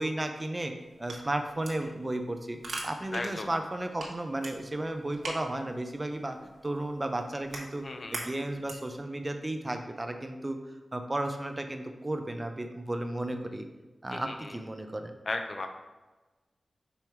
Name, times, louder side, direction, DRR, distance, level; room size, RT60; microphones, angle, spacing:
voice 1, 0.0-2.6 2.8-6.4 6.6-7.8 8.1-10.6 10.9-13.7 14.0-15.1, right 1 dB, 20° right, 6 dB, 0.5 m, -34 dB
sound 1, 0.8-9.0, right 2 dB, 80° right, 1.2 m, -44 dB
voice 2, 3.1-3.5 7.8-8.2 14.1-14.6 15.3-15.7, left 2 dB, 45° left, 6 dB, 0.6 m, -35 dB
5.4 x 4.6 x 4.5 m, 1.2 s
wide cardioid pair, 140°, 0 cm